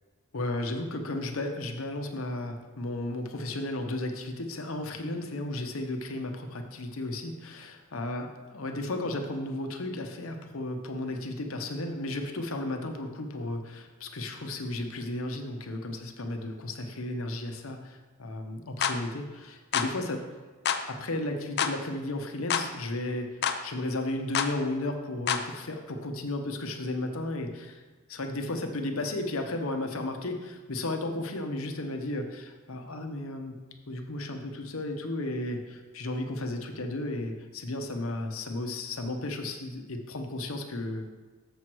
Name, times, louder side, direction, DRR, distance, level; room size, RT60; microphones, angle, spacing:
voice 1, 0.3-8.3 8.5-20.2 20.9-23.4 23.6-27.8 28.1-33.6 33.9-41.1, left 2 dB, 75° left, 4 dB, 0.9 m, -34 dB
sound 1, 18.8-19.0 19.7-19.9 20.7-20.8 21.6-21.8 22.5-22.7 23.4-23.6 24.4-24.5 25.3-25.5, left 7 dB, 50° left, 0.5 m, -27 dB
7.1 x 4.6 x 6.2 m, 1.3 s
head